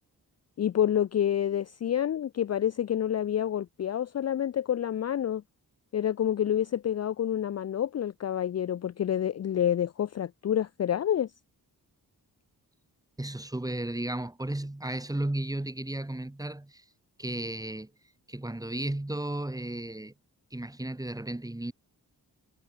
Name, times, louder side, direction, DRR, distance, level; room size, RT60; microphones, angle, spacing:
voice 1, 0.6-5.4 5.9-11.3, left 10 dB, 45° left, 0.5 m, -28 dB
voice 2, 13.2-16.8 17.2-17.9 18.3-20.1 20.5-21.7, right 1 dB, 10° right, 4.5 m, -34 dB
wide cardioid pair, 150°, 38 cm